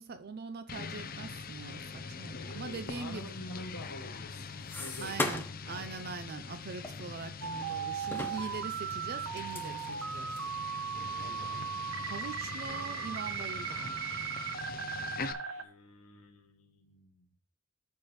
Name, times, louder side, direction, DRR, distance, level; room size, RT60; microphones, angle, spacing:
voice 1, 0.0-3.3 5.0-10.3 12.0-14.0, right 4 dB, 45° right, 0.5 m, -42 dB
sound 1, 0.7-15.3, left 5 dB, 40° left, 0.6 m, -43 dB
voice 2, 2.3-4.5 4.8-5.3 8.3-8.7 11.2-11.7 15.6-17.2, left 1 dB, 85° left, 1.7 m, -47 dB
sound 2, 3.8-5.7 6.0-6.2 6.8-7.7 8.0-10.5 11.1-11.2 11.4-11.5 12.2-12.4 12.9-13.6 13.9-14.6, left 2 dB, 10° left, 0.8 m, -40 dB
sound 3, 7.4-15.6, right 6 dB, 85° right, 0.9 m, -37 dB
13.5 x 4.5 x 3.1 m
head